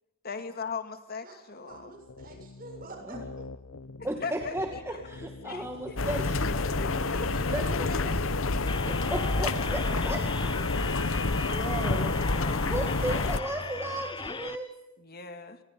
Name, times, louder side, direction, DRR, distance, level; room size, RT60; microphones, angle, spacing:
voice 1, 0.2-1.9 4.2-5.1 5.4-6.0 6.8-8.4 12.4-13.3 15.0-15.6, left 5 dB, 50° left, 8 dB, 2.2 m, -40 dB
voice 2, 1.2-3.4, right 2 dB, 45° right, 3 dB, 7.5 m, -47 dB
sound 1, 1.7-12.5, left 3 dB, 90° left, 0.9 m, -44 dB
voice 3, 4.0-6.7 7.2-8.1 8.8-11.0 11.3-12.2 12.7-14.7, right 1 dB, 15° right, 2 dB, 2.3 m, -36 dB
sound 2, 6.0-13.4, left 3 dB, 70° left, 1.2 m, -28 dB
sound 3, 8.7-14.6, left 4 dB, 25° left, 0.8 m, -37 dB
28.5 x 23.5 x 5.4 m, 0.95 s
head